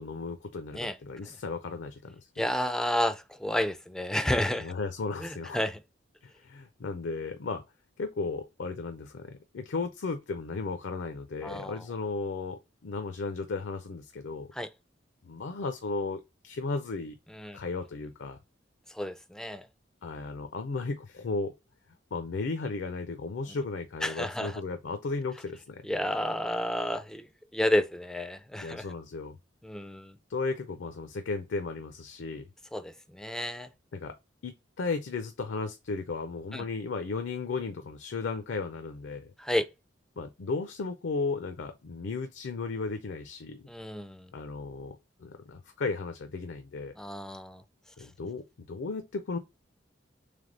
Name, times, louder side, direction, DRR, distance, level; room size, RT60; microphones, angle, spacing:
voice 1, 0.0-2.4 4.6-5.6 6.4-7.6 8.0-14.5 15.2-17.2 17.5-18.4 20.0-21.5 22.1-25.8 28.6-29.4 30.3-32.5 33.9-34.2 34.4-39.3 40.2-43.6 44.3-46.9 48.0-49.4, left 4 dB, 75° left, 0.5 m, -35 dB
voice 2, 2.4-4.7 5.2-5.8 11.4-11.8 14.5-14.7 17.3-17.6 18.9-19.7 24.0-24.6 25.8-27.3 27.5-28.9 29.6-30.2 32.7-33.7 36.5-36.6 39.4-39.7 43.7-44.3 47.0-47.6, left 1 dB, 5° left, 0.3 m, -31 dB
3.4 x 3.4 x 3.8 m
head